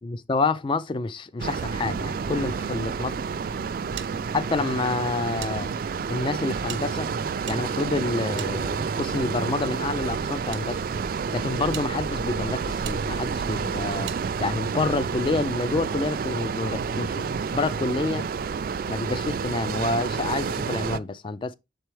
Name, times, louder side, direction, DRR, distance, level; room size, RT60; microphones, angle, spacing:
voice 1, 0.0-3.1 3.6-3.7 4.3-5.7 6.1-7.1 7.5-10.8 11.3-14.1 14.4-18.3 18.9-21.5, left 3 dB, 30° left, 0.3 m, -28 dB
sound 1, 1.4-21.0, right 5 dB, 55° right, 0.3 m, -29 dB
sound 2, 4.0-5.5 5.8-5.9 6.6-9.1 9.9-10.6 11.2-11.3 11.7-11.9 12.8-13.0 14.1-14.2, right 11 dB, 90° right, 0.7 m, -41 dB
7.5 x 4.5 x 3.1 m
head